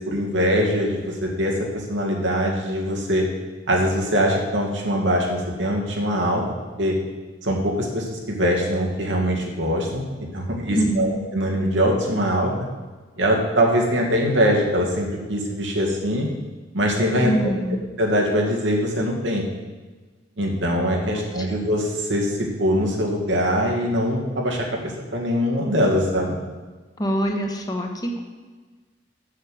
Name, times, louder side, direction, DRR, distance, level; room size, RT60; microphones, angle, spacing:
voice 1, 0.0-1.6 1.9-3.3 3.7-6.4 6.8-7.0 7.4-10.0 10.3-12.5 13.2-16.3 16.7-17.5 18.0-19.5 20.4-26.4, equal, 90° right, -1 dB, 2.1 m, -22 dB
voice 2, 10.7-11.2 17.2-17.8 21.1-21.6 27.0-28.2, right 1 dB, 20° left, 2 dB, 1.1 m, -24 dB
7.4 x 6.5 x 7.6 m, 1.3 s
head